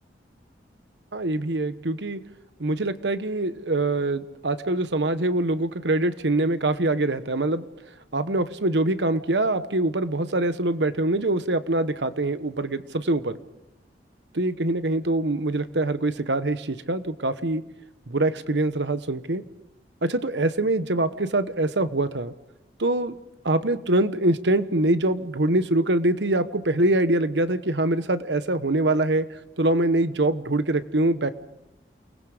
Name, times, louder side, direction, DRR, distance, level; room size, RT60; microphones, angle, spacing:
voice 1, 1.1-2.2 2.6-7.6 8.1-13.4 14.3-17.6 18.1-19.4 20.0-22.3 22.8-23.2 23.4-29.3 29.6-31.3, right 2 dB, 85° right, 11 dB, 1.2 m, -24 dB
29.0 x 20.5 x 5.1 m, 0.87 s
head